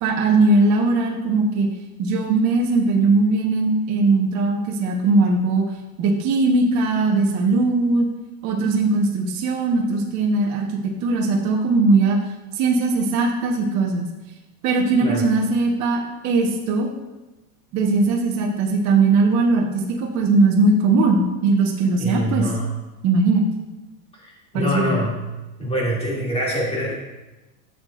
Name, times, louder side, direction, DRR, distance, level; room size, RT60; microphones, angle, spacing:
voice 1, 0.0-1.7 2.0-5.6 6.0-8.1 8.4-10.7 11.0-12.2 12.5-14.1 14.6-16.9 17.7-22.5 23.0-23.5 24.5-24.9, right 3 dB, 40° right, -1 dB, 1.2 m, -19 dB
voice 2, 22.0-22.7 24.2-25.2 25.6-26.9, equal, 15° left, -5 dB, 2.6 m, -24 dB
12.0 x 6.8 x 2.5 m, 1.1 s
supercardioid pair, 140°, 44 cm